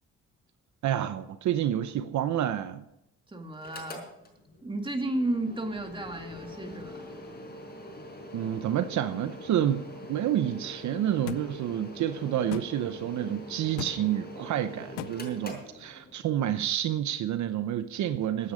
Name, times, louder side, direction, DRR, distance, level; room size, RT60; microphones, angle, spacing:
voice 1, 0.8-2.8 8.3-9.8 10.1-18.5, right 11 dB, 70° right, 0.8 m, -29 dB
voice 2, 3.3-4.0 4.6-7.1, right 2 dB, 15° right, 2.2 m, -33 dB
Mechanical fan, 3.5-16.4, left 1 dB, 30° left, 5.2 m, -44 dB
sound 1, 11.3-11.4 12.5-12.7 13.8-14.0 15.0-15.1, left 13 dB, 90° left, 0.7 m, -35 dB
16.0 x 9.6 x 5.1 m
cardioid pair, 90°, 30 cm